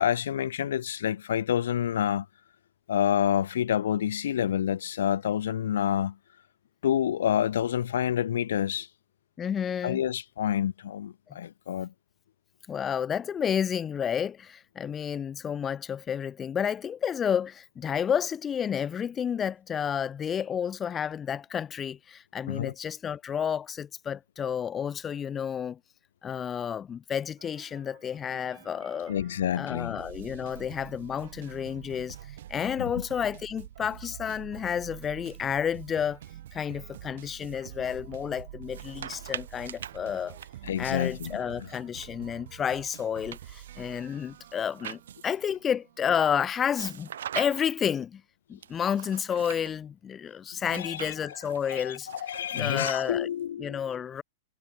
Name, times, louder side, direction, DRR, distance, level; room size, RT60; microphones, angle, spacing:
voice 1, 0.0-2.3 2.9-6.2 6.8-8.9 9.8-11.9 22.5-22.7 29.1-30.0 32.8-32.9 40.6-41.7 50.7-51.4 51.7-53.8, left 10 dB, 75° left, 1.1 m, -28 dB
voice 2, 9.4-10.0 11.3-11.4 12.7-25.8 26.2-29.1 29.6-32.2 32.5-36.2 36.5-40.4 40.8-47.1 47.3-48.2 48.5-52.1 52.5-53.3 53.6-54.2, left 8 dB, 15° left, 2.9 m, -31 dB
sound 1, 27.4-46.5, right 12 dB, 55° right, 5.0 m, -47 dB
sound 2, 38.6-42.1 42.6-45.5 46.7-47.9 48.6-49.7 50.6-53.4, right 9 dB, 85° right, 5.5 m, -43 dB
supercardioid pair, 175°, 0 cm